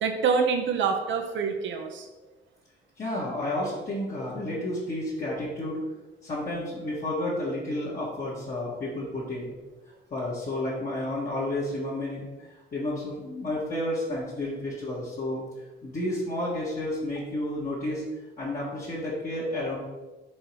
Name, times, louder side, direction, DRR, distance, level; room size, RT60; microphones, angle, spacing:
voice 1, 0.0-2.1, right 5 dB, 70° right, 4 dB, 1.0 m, -26 dB
voice 2, 3.0-5.8 6.2-9.5 10.1-15.4 15.8-18.0 18.4-19.8, left 1 dB, 45° left, -9 dB, 1.9 m, -31 dB
5.2 x 3.9 x 4.9 m, 1.1 s
cardioid pair, 90°, 20 cm